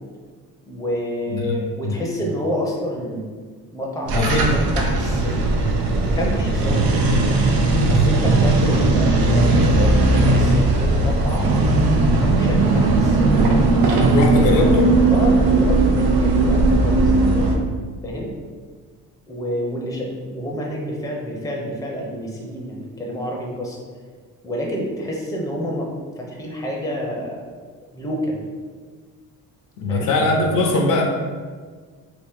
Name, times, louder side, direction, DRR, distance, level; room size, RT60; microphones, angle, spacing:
voice 1, 0.7-3.3 3.7-5.5 6.1-6.8 7.9-11.6 12.3-13.4 14.0-14.5 15.1-17.5 18.0-18.3 19.3-23.8 24.4-25.9 26.2-27.5 27.9-28.4 29.9-30.1, equal, 10° left, -2 dB, 0.6 m, -28 dB
voice 2, 4.1-4.6 14.1-14.9 29.8-31.0, left 2 dB, 65° left, 1 dB, 0.7 m, -20 dB
sound 1, 4.1-17.6, right 2 dB, 80° right, 0.6 m, -17 dB
2.9 x 2.9 x 3.5 m, 1.6 s
cardioid pair, 105°, 35 cm